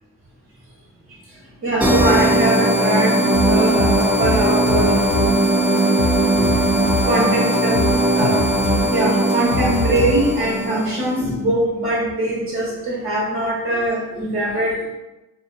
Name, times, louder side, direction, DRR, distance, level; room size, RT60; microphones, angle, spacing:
voice 1, 1.6-5.0 6.3-6.4 7.1-8.4 8.8-14.9, right 1 dB, 45° right, -5 dB, 1.1 m, -22 dB
sound 1, 1.8-11.2, right 1 dB, 5° right, 0.4 m, -19 dB
sound 2, 3.3-5.5 5.8-7.2 7.5-10.5, left 2 dB, 70° left, 0.5 m, -25 dB
2.4 x 2.2 x 2.5 m, 1.0 s
cardioid pair, 90°, 30 cm